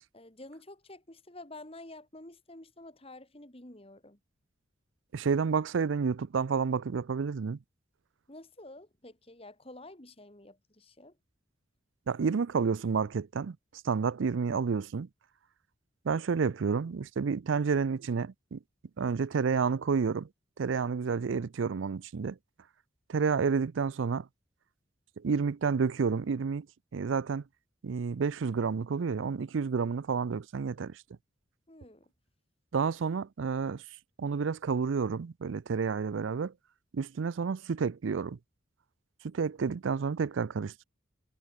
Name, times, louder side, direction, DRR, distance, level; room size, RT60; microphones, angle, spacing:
voice 1, 0.1-4.2 8.3-11.2 31.7-32.1, left 2 dB, 30° left, 2.5 m, -49 dB
voice 2, 5.1-7.6 12.1-13.6 13.8-15.1 16.0-18.6 19.0-20.3 20.6-22.4 23.1-24.3 25.2-26.7 26.9-27.4 27.8-31.0 32.7-33.8 34.2-36.5 36.9-38.4 39.2-40.8, right 5 dB, 75° right, 0.5 m, -30 dB
head